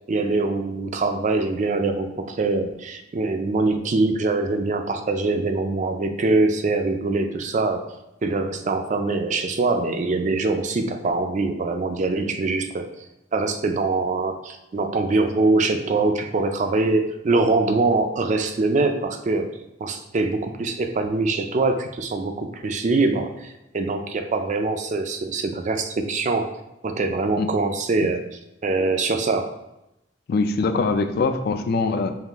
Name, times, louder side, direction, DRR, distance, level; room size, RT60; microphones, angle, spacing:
voice 1, 0.1-7.9 8.2-12.9 13.3-19.5 19.8-26.5 26.8-28.2 28.6-29.5, right 3 dB, 40° right, 6 dB, 0.4 m, -23 dB
voice 2, 30.3-32.1, left 4 dB, 55° left, 9 dB, 0.4 m, -22 dB
5.6 x 2.4 x 3.4 m, 0.88 s
head